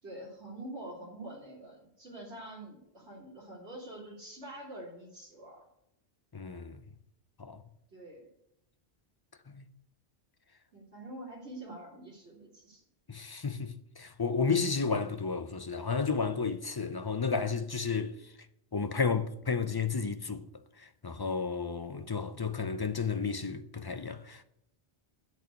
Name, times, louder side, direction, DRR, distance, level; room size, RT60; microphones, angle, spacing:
voice 1, 0.0-5.6 7.9-8.3 10.7-12.8, right 1 dB, 85° right, 3.3 m, -46 dB
voice 2, 6.3-6.8 7.4-7.6 9.5-9.6 13.1-18.1 18.7-20.4 20.8-24.4, left 5 dB, 30° left, 0.5 m, -32 dB
8.2 x 6.9 x 8.1 m
omnidirectional pair, 1.1 m